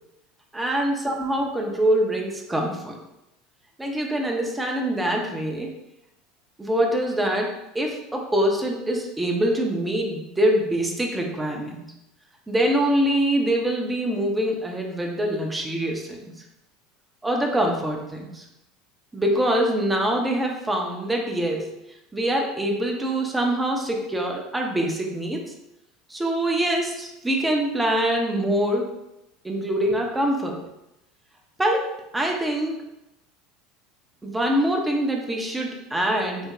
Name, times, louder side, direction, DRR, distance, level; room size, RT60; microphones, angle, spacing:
voice 1, 0.5-3.0 3.8-5.7 6.6-11.9 12.5-16.3 17.2-18.4 19.1-21.7 22.1-25.5 26.1-28.9 29.4-30.6 31.6-32.8 34.2-36.5, right 1 dB, 10° right, 1 dB, 0.6 m, -24 dB
4.7 x 2.1 x 2.6 m, 0.89 s
figure-of-eight pair, 70°, 0 cm